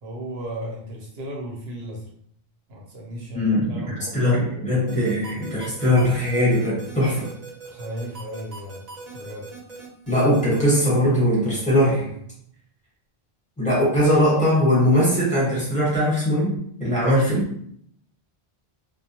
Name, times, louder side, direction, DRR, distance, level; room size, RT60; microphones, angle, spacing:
voice 1, 0.0-2.1 2.7-4.7 7.6-8.8 9.1-9.5 10.1-10.5, right 1 dB, 75° right, -1 dB, 1.0 m, -36 dB
voice 2, 3.3-7.3 10.1-12.1 13.6-17.4, equal, 5° left, -8 dB, 1.1 m, -20 dB
sound 1, 4.9-10.6, right 3 dB, 45° right, 0.9 m, -40 dB
2.2 x 2.1 x 2.8 m, 0.67 s
omnidirectional pair, 1.1 m